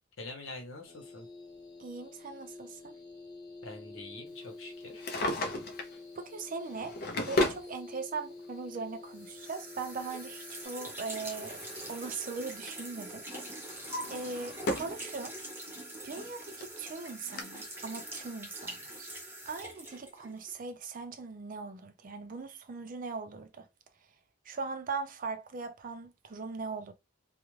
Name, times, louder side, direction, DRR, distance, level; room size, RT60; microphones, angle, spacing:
voice 1, 0.2-1.3 3.6-5.0 6.8-6.9, left 2 dB, 80° left, 0.9 m, -45 dB
sound 1, 0.8-10.7, left 3 dB, 20° left, 0.8 m, -48 dB
voice 2, 1.8-3.0 6.2-7.0 7.3-11.6 11.9-13.3 14.1-15.4 16.0-19.1 19.5-23.7 24.5-26.9, right 4 dB, 45° right, 0.4 m, -40 dB
Drawer open or close, 4.8-6.0 6.7-7.7 8.7-8.8 10.6-12.2 12.4-12.8 13.3-15.0 15.4-15.5 16.3-16.4 16.6-16.7 17.4-17.5, left 1 dB, 50° left, 0.5 m, -34 dB
sound 2, 9.1-20.6, right 1 dB, 10° right, 0.8 m, -44 dB
2.4 x 2.1 x 3.0 m
head